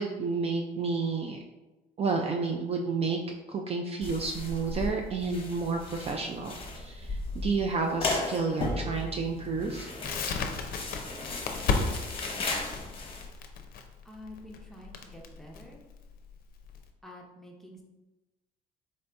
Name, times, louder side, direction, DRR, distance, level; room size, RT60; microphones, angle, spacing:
voice 1, 0.0-1.4 2.0-3.2 3.5-9.9, right 4 dB, 35° right, 2 dB, 0.4 m, -30 dB
sound 1, 4.0-13.3, left 2 dB, 35° left, 0.8 m, -36 dB
Crackle, 10.0-16.8, left 5 dB, 60° left, 0.5 m, -33 dB
voice 2, 14.0-15.8 17.0-17.8, left 1 dB, ahead, -1 dB, 0.7 m, -48 dB
4.2 x 2.7 x 3.4 m, 1.1 s
cardioid pair, 110°, 17 cm